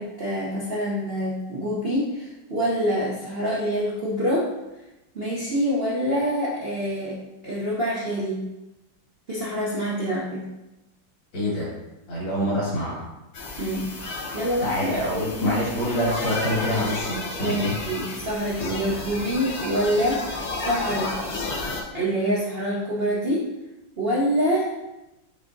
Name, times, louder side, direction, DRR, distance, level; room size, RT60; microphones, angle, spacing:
voice 1, 0.0-4.5 5.1-7.2 7.4-8.4 9.3-10.4 12.4-12.5 13.6-13.9 14.3-15.0 15.4-15.6 17.4-20.2 20.6-21.1 21.9-23.4 24.0-24.7, equal, 55° right, -7 dB, 0.6 m, -26 dB
voice 2, 11.3-11.7 12.1-13.0 14.6-17.7, equal, 70° left, -6 dB, 2.5 m, -26 dB
sound 1, 13.3-21.8, left 2 dB, 90° left, 0.6 m, -32 dB
5.4 x 3.5 x 2.6 m, 0.98 s
omnidirectional pair, 2.1 m